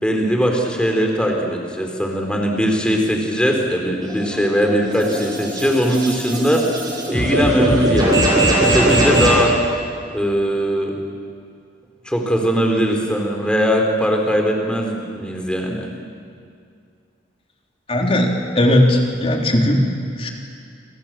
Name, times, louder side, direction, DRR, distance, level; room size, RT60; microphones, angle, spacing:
voice 1, 0.0-6.7 7.1-9.6 10.1-11.0 12.1-15.9, equal, 5° left, 2 dB, 4.0 m, -20 dB
sound 1, 4.0-9.5, right 1 dB, 20° right, 6.3 m, -20 dB
voice 2, 17.9-19.9 20.2-20.3, left 1 dB, 30° left, 1 dB, 3.6 m, -17 dB
28.5 x 26.0 x 7.7 m, 2.3 s
head